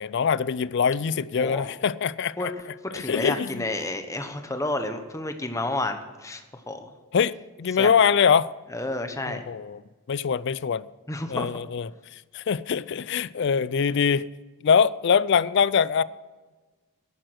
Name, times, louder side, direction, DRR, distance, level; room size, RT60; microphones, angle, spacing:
voice 1, 0.0-2.5 2.9-3.6 7.1-7.3 7.6-8.5 9.3-9.8 10.1-10.8 11.3-11.9 12.3-14.2 14.6-16.0, left 6 dB, 55° left, 0.4 m, -23 dB
voice 2, 1.4-1.7 2.4-2.5 2.9-6.9 7.8-7.9 8.7-9.5 11.1-11.5, left 2 dB, 15° left, 1.0 m, -30 dB
11.0 x 9.2 x 7.8 m
head